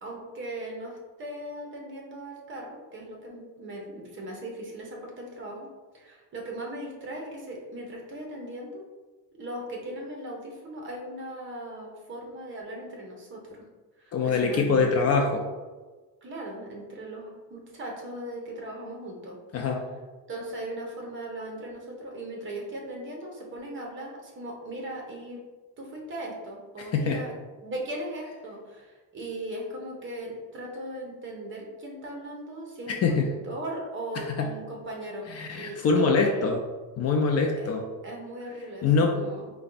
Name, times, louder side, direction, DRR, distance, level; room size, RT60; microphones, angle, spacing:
voice 1, 0.0-5.7 5.9-8.8 9.4-13.7 14.0-14.9 16.2-19.4 20.3-25.4 25.8-27.3 27.6-36.5 37.5-37.7 38.0-39.5, right 1 dB, 30° right, -1 dB, 0.8 m, -38 dB
voice 2, 14.1-15.4 19.5-19.8 26.8-27.2 33.0-33.3 34.3-34.5 35.3-36.6 37.0-37.8 38.8-39.2, left 4 dB, 45° left, 2 dB, 0.4 m, -24 dB
4.3 x 2.2 x 3.9 m, 1.3 s
cardioid pair, 165°, 38 cm